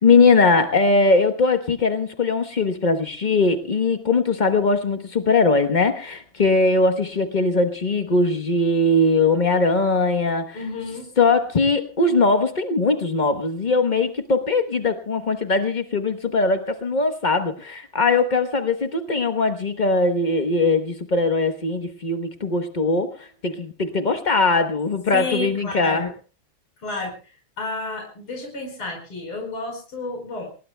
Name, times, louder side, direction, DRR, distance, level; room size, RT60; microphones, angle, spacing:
voice 1, 0.0-10.6 11.2-26.1, left 3 dB, 50° left, 6 dB, 0.5 m, -20 dB
voice 2, 10.5-11.1 25.1-26.1 26.8-27.1 27.6-30.5, left 2 dB, 80° left, 2 dB, 5.7 m, -31 dB
28.5 x 19.0 x 2.2 m, 0.36 s
omnidirectional pair, 2.4 m